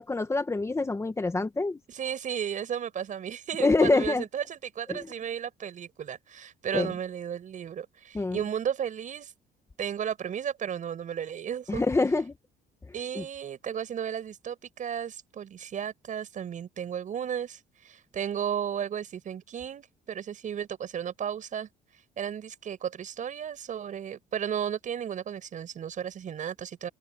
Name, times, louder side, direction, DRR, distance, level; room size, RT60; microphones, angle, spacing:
voice 1, 0.0-1.8 3.6-4.2 4.9-5.1 6.7-6.9 8.1-8.4 11.7-12.3 13.1-13.2, left 3 dB, 15° left, 1.5 m, -26 dB
voice 2, 1.9-9.3 9.8-11.8 12.9-21.7 22.2-26.9, right 8 dB, 50° right, 6.3 m, -34 dB
cardioid pair, 110°, 17 cm